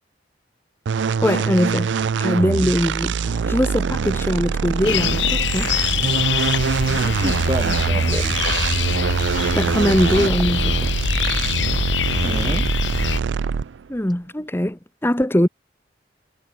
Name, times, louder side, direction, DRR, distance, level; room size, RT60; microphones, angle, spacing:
sound 1, 0.9-13.8, right 5 dB, 80° right, 0.4 m, -23 dB
voice 1, 1.2-1.9 2.2-5.7 9.5-10.7 13.9-15.5, equal, 15° left, 1.1 m, -21 dB
sound 2, 3.2-8.8, equal, 5° right, 3.4 m, -42 dB
sound 3, 4.8-13.2, left 6 dB, 80° left, 0.9 m, -24 dB
voice 2, 6.8-8.4 12.2-12.7, right 1 dB, 25° right, 3.7 m, -29 dB
head